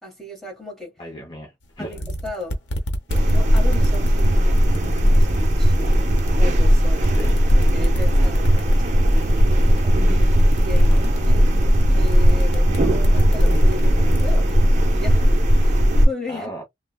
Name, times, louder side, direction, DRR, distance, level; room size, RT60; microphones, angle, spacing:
voice 1, 0.0-0.9 1.8-2.6 3.2-4.6 5.0-7.3 7.7-11.5 11.9-14.6 14.9-16.5, left 2 dB, ahead, 1.3 m, -36 dB
voice 2, 1.0-2.0 7.2-7.4 10.8-11.1 16.3-16.6, equal, 25° left, 0.7 m, -36 dB
sound 1, 1.6-1.7 1.9-6.5 6.9-14.5, equal, 90° left, 0.8 m, -31 dB
sound 2, 3.1-16.1, equal, 40° right, 0.6 m, -17 dB
3.3 x 2.1 x 2.2 m
head